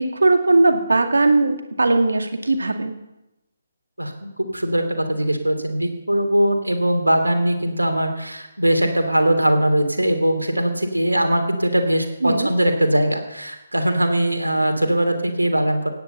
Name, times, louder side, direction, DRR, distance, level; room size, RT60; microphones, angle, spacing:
voice 1, 0.0-3.0 12.2-12.5, right 2 dB, 70° right, 6 dB, 2.2 m, -18 dB
voice 2, 4.4-4.8 5.1-15.9, right 1 dB, 90° right, 6 dB, 3.0 m, -20 dB
17.0 x 9.8 x 6.9 m, 0.93 s
figure-of-eight pair, 140°, 0 cm